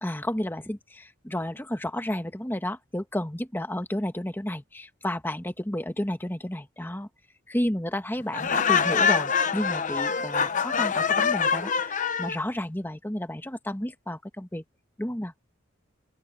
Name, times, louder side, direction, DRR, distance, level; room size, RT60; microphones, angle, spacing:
voice 1, 0.0-7.1 7.5-14.6 15.0-15.3, left 1 dB, 10° left, 1.5 m, -32 dB
Laughter, 8.3-12.4, left 6 dB, 40° left, 0.9 m, -24 dB
open air
head